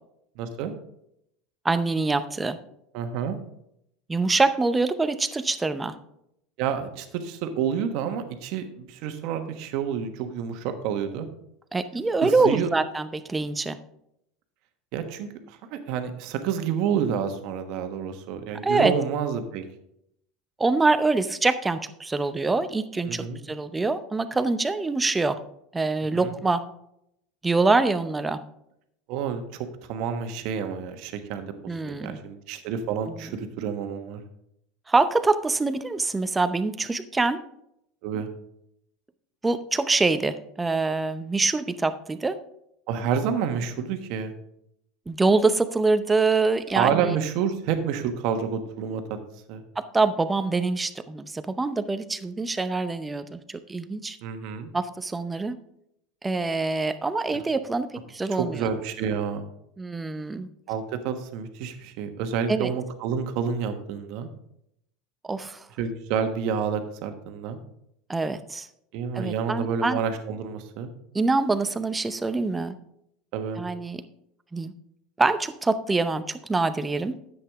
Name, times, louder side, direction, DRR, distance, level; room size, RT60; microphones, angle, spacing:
voice 1, 0.4-0.7 2.9-3.4 6.6-11.3 12.2-12.7 14.9-19.6 23.1-23.4 26.1-26.4 29.1-31.5 31.9-34.2 38.0-38.3 42.9-44.3 46.7-49.0 49.5-49.6 54.2-54.7 58.4-59.4 60.7-64.3 65.8-67.6 68.9-70.9 73.3-73.6, right 7 dB, 65° right, 7 dB, 1.2 m, -29 dB
voice 2, 1.6-2.6 4.1-5.9 11.7-13.8 18.6-18.9 20.6-25.4 25.7-26.6 27.4-28.4 31.7-32.2 33.1-33.2 34.9-37.4 39.4-42.4 45.1-47.2 49.8-54.2 54.7-55.6 56.2-58.7 59.8-60.5 62.5-62.7 65.3-65.7 68.1-68.7 69.1-70.0 71.1-72.8 73.6-74.0 74.5-74.7 75.2-77.2, right 3 dB, 15° right, 11 dB, 0.7 m, -25 dB
10.0 x 8.0 x 3.6 m, 0.77 s
supercardioid pair, 105°, 0 cm